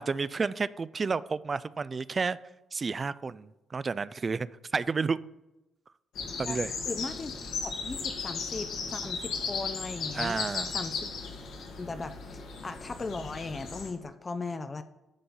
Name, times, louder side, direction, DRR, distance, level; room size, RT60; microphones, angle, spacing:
voice 1, 0.0-2.4 2.7-4.5 4.7-5.2 6.4-6.7 10.1-10.7, right 4 dB, 35° right, 0.3 m, -31 dB
sound 1, 6.1-13.9, left 5 dB, 80° left, 1.9 m, -36 dB
voice 2, 6.9-7.4 7.6-10.4 10.7-11.1 11.7-14.8, left 3 dB, 30° left, 0.5 m, -38 dB
10.0 x 3.8 x 7.0 m
cardioid pair, 90°, 0 cm